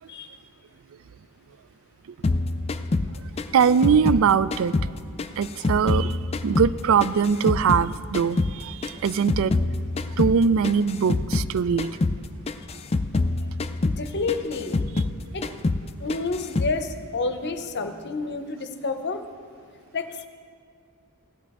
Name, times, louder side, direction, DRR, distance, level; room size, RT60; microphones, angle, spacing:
sound 1, 2.2-4.9 5.2-7.9 8.1-11.5 11.8-12.2 12.5-15.2 15.4-15.8 16.1-16.8, left 3 dB, 25° left, 0.3 m, -26 dB
voice 1, 3.5-4.7 5.4-6.2 6.4-9.5 10.2-11.9, right 6 dB, 65° right, 17 dB, 0.3 m, -21 dB
voice 2, 13.8-14.8 15.3-15.4 16.0-19.2 19.9-20.3, left 3 dB, 50° left, 8 dB, 0.7 m, -29 dB
15.5 x 10.5 x 3.6 m, 2.3 s
head